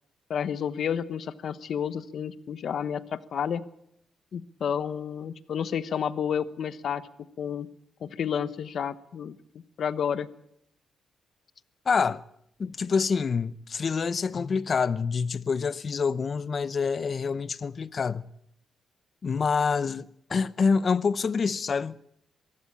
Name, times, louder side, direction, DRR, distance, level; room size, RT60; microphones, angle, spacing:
voice 1, 0.3-3.6 4.3-7.0 7.4-7.7 8.0-9.3 9.8-10.3, left 8 dB, 60° left, 1.1 m, -30 dB
voice 2, 11.9-12.2 12.6-18.3 19.2-22.0, left 5 dB, 45° left, 0.7 m, -26 dB
22.5 x 15.5 x 8.7 m
cardioid pair, 105°, 0 cm